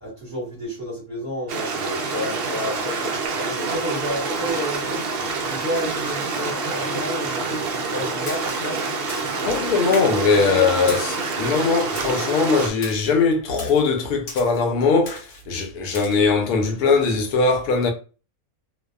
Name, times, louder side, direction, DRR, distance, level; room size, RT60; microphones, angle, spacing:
voice 1, 0.0-5.0 5.4-8.8 10.3-10.7, equal, 10° right, 1.1 m, -31 dB
Stream, 1.5-12.7, right 4 dB, 70° right, 0.5 m, -27 dB
Splash splatter, 8.3-8.7 9.1-9.4 9.9-10.2 10.9-11.3 12.0-12.3 12.8-13.1 13.6-13.8 14.3-14.6 15.1-15.4 15.9-16.2, left 3 dB, 60° left, 1.0 m, -37 dB
voice 2, 9.5-17.9, left 4 dB, 85° left, 1.1 m, -20 dB
2.5 x 2.1 x 2.3 m
omnidirectional pair, 1.5 m